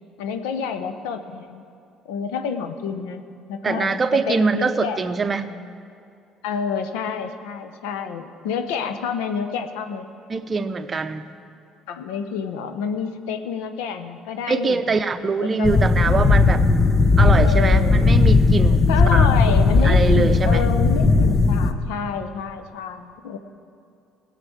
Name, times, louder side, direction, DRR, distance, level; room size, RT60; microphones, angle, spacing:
voice 1, 0.2-1.6 2.0-3.2 3.5-5.0 6.4-10.1 11.9-15.0 15.4-16.3 17.4-18.2 18.9-23.4, left 6 dB, 85° left, 8 dB, 0.8 m, -29 dB
voice 2, 3.6-5.5 10.3-11.2 14.5-16.6 17.2-19.5 19.8-20.6, right 4 dB, 30° right, 8 dB, 0.7 m, -23 dB
sound 1, 15.6-21.7, left 4 dB, 35° left, 0.9 m, -16 dB
16.0 x 6.7 x 7.8 m, 2.5 s
supercardioid pair, 75°, 0 cm